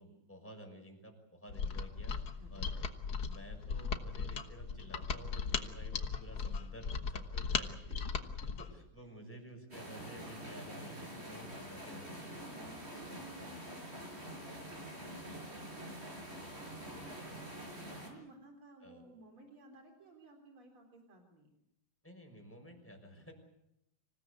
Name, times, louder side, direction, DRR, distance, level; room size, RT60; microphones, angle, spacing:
voice 1, 0.0-2.1 2.5-2.9 3.2-8.0 8.6-12.5 14.9-15.1 16.5-17.5 18.8-19.1 22.0-23.3, equal, 5° left, 3 dB, 6.1 m, -53 dB
Mechanisms, 1.5-8.7, left 5 dB, 55° left, 1.9 m, -37 dB
sound 1, 9.7-18.1, right 1 dB, 30° right, 6.2 m, -46 dB
voice 2, 12.3-13.9 14.3-14.4 16.3-16.7 18.0-21.5, right 2 dB, 85° right, 3 dB, 4.7 m, -57 dB
26.5 x 17.5 x 8.3 m, 0.82 s
omnidirectional pair, 2.3 m